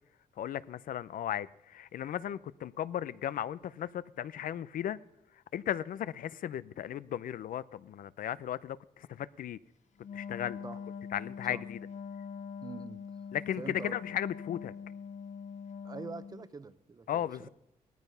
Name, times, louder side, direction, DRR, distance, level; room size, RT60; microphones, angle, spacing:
voice 1, 0.4-5.0 5.5-9.6 10.1-10.6 11.1-11.8 13.3-14.7 17.1-17.5, left 10 dB, 70° left, 18 dB, 0.6 m, -36 dB
Wind instrument woodwind instrument, 10.0-16.5, left 6 dB, 50° left, 1.0 m, -43 dB
voice 2, 12.6-13.0 13.6-14.0 15.8-17.5, right 4 dB, 25° right, 13 dB, 0.9 m, -44 dB
17.5 x 13.5 x 5.5 m, 0.83 s
cardioid pair, 125°, 15 cm